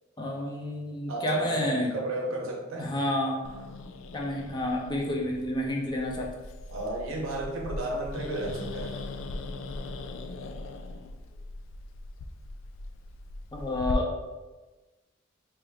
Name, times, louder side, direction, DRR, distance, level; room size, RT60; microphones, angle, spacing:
voice 1, 0.2-1.9 2.8-3.4 4.1-6.3 13.5-14.1, left 1 dB, 20° left, -1 dB, 0.6 m, -29 dB
voice 2, 1.1-2.9 6.7-9.0, right 2 dB, 75° right, 0 dB, 0.8 m, -33 dB
Growling, 3.4-13.9, left 2 dB, 65° left, 0.3 m, -40 dB
4.9 x 3.1 x 2.3 m, 1.2 s
head